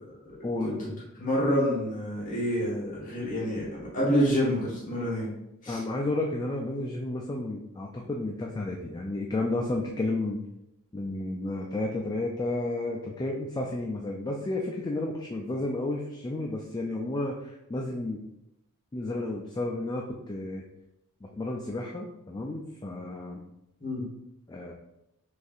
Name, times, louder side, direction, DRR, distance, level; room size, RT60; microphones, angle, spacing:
voice 1, 0.4-1.0 5.7-10.4 10.9-18.2 18.9-20.6 21.4-23.4 24.5-24.7, left 2 dB, 20° left, 0 dB, 0.3 m, -32 dB
voice 2, 1.2-5.3 5.6-5.8 23.8-24.0, equal, 40° left, -6 dB, 1.4 m, -27 dB
6.3 x 2.7 x 2.4 m, 0.85 s
head